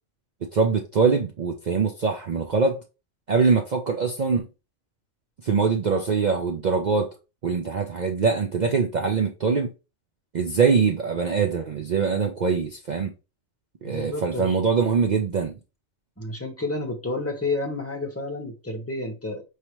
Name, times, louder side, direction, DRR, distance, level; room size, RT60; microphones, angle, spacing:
voice 1, 0.4-2.8 3.3-4.5 5.4-7.1 7.4-9.7 10.3-13.1 13.8-15.6, right 5 dB, 55° right, 0.5 m, -23 dB
voice 2, 13.8-14.6 16.2-19.4, left 2 dB, 15° left, 0.7 m, -30 dB
4.8 x 2.8 x 2.9 m
omnidirectional pair, 1.3 m